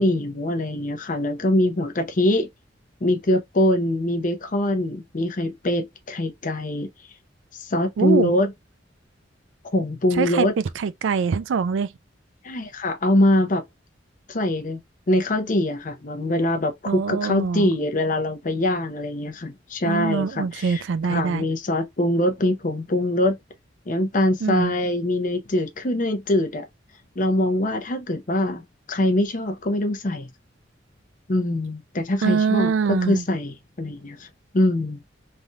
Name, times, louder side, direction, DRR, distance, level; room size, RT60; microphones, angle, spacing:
voice 1, 0.0-2.5 3.0-6.9 7.5-8.5 9.7-10.5 12.4-13.6 14.3-14.8 15.1-20.8 21.1-23.4 23.9-26.7 27.2-28.6 28.9-30.3 31.3-34.3 34.5-35.0, left 1 dB, 45° left, 0.7 m, -23 dB
voice 2, 8.0-8.3 10.1-11.9 16.9-17.7 19.8-21.5 24.4-24.7 32.2-33.3, right 5 dB, 75° right, 0.4 m, -23 dB
3.3 x 2.6 x 2.2 m
head